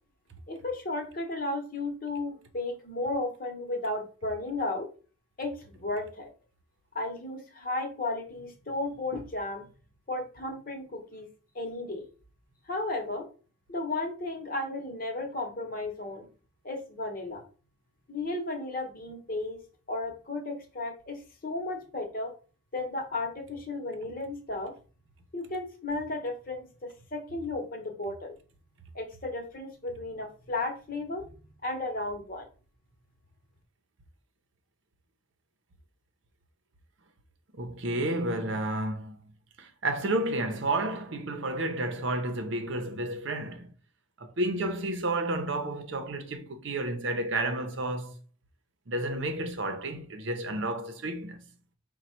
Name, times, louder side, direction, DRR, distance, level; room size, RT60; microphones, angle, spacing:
voice 1, 0.5-4.9 5.4-6.3 6.9-9.7 10.1-11.3 11.5-12.1 12.7-13.3 13.7-16.3 16.6-17.4 18.1-19.6 19.9-22.3 22.7-24.7 25.3-28.4 28.9-31.3 31.6-32.5, left 2 dB, 45° left, 0.9 m, -34 dB
voice 2, 37.5-39.2 39.6-43.7 44.2-48.1 48.9-51.4, right 2 dB, 65° right, 0.7 m, -31 dB
5.2 x 2.3 x 4.3 m
head